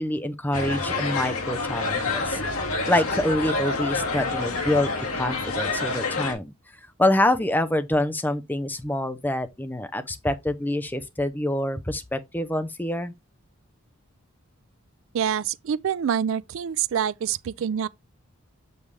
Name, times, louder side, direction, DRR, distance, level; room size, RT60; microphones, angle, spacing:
voice 1, 0.0-6.5 7.0-13.1, left 1 dB, 10° left, 0.5 m, -26 dB
sound 1, 0.5-6.3, left 3 dB, 85° left, 1.7 m, -27 dB
voice 2, 15.1-17.9, right 8 dB, 65° right, 0.3 m, -26 dB
6.5 x 5.4 x 3.2 m
head